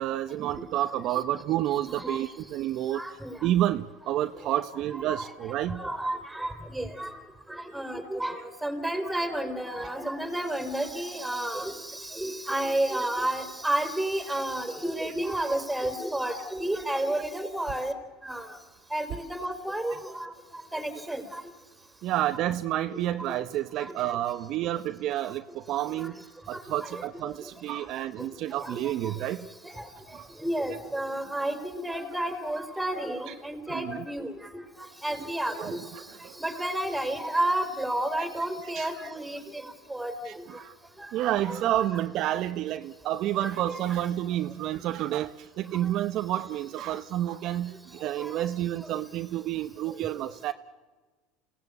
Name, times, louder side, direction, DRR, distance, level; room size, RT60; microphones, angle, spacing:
voice 1, 0.0-3.1 3.4-5.8 22.0-26.2 26.5-29.5 30.1-30.2 33.3-33.4 33.7-34.0 35.6-35.8 36.2-36.4 38.7-38.9 40.3-40.7 41.1-50.5, right 13 dB, 55° right, 9 dB, 0.9 m, -29 dB
voice 2, 2.9-3.3 4.9-7.1 7.5-17.9 18.2-18.4 18.9-20.3 20.7-21.4 26.0-26.1 26.5-27.3 27.7-27.8 28.6-29.1 29.6-29.7 30.4-34.3 35.0-35.8 36.4-39.6 39.9-40.4 41.0-41.1 41.4-41.6 43.7-44.0 48.2-48.4, right 1 dB, 5° right, 8 dB, 4.0 m, -31 dB
28.0 x 17.5 x 8.3 m, 1.3 s
supercardioid pair, 100°, 0 cm